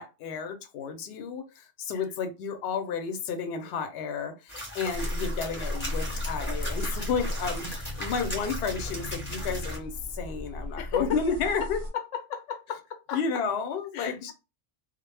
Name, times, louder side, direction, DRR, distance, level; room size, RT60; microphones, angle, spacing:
voice 1, 0.0-11.8 13.1-14.3, left 5 dB, 65° left, 0.7 m, -32 dB
sound 1, 4.5-9.8, left 1 dB, 10° left, 0.8 m, -37 dB
sound 2, 4.9-11.9, left 1 dB, 75° right, 0.3 m, -35 dB
voice 2, 10.8-11.2 11.6-11.7 11.9-13.2 13.9-14.3, left 8 dB, 90° left, 0.9 m, -34 dB
2.1 x 2.0 x 3.2 m
omnidirectional pair, 1.2 m